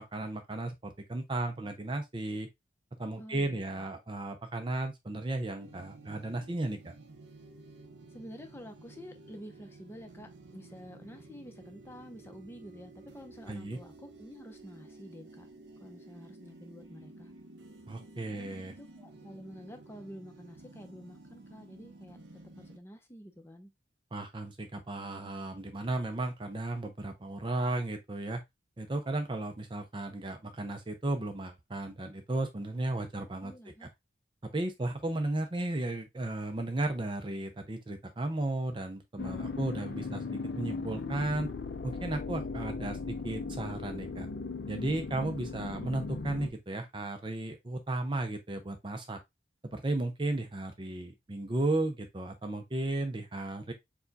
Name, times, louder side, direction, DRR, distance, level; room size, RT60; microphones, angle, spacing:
voice 1, 0.0-2.5 3.0-6.9 13.5-13.8 17.9-18.7 24.1-28.4 28.8-33.5 34.5-40.2 40.6-41.5 41.8-44.3 44.7-49.2 49.6-53.7, right 2 dB, 25° right, 0.5 m, -34 dB
voice 2, 3.2-3.9 8.1-15.5 15.8-17.3 18.3-22.2 22.6-23.7 33.4-33.9, equal, 10° left, 0.7 m, -49 dB
sound 1, 5.6-22.8, right 2 dB, 75° right, 1.0 m, -53 dB
sound 2, 39.2-46.5, left 4 dB, 55° left, 0.5 m, -38 dB
4.7 x 2.3 x 4.0 m
head